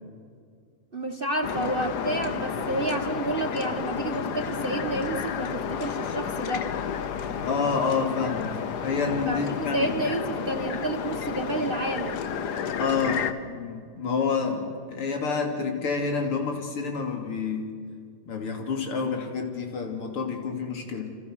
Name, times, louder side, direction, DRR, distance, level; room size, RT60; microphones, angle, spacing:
voice 1, 0.9-6.7 9.3-9.4 9.7-12.2, right 2 dB, 30° right, 6 dB, 1.1 m, -30 dB
sound 1, 1.4-13.3, left 7 dB, 55° left, 1.4 m, -31 dB
voice 2, 7.4-10.1 12.8-17.7 18.3-21.1, left 5 dB, 90° left, 3 dB, 3.8 m, -28 dB
30.0 x 27.0 x 6.4 m, 2.2 s
omnidirectional pair, 2.4 m